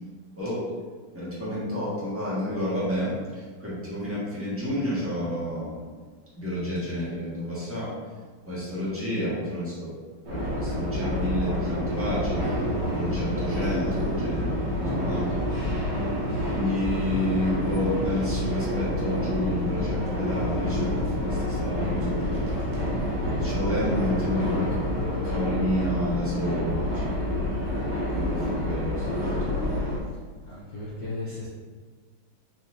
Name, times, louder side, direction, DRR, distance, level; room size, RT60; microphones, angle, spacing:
voice 1, 1.1-5.8 6.4-7.9 8.5-9.9 10.3-12.4 12.9-15.3 16.5-22.2 23.4-24.7 25.1-27.2 28.1-29.3, equal, 10° right, -9 dB, 1.1 m, -30 dB
sound 1, 10.2-30.0, left 1 dB, 55° right, 1.7 m, -28 dB
sound 2, 11.9-25.1, right 2 dB, 80° right, 1.7 m, -36 dB
voice 2, 23.8-24.6 30.5-31.5, left 2 dB, 75° left, -7 dB, 0.7 m, -37 dB
4.4 x 4.3 x 2.6 m, 1.5 s
omnidirectional pair, 2.4 m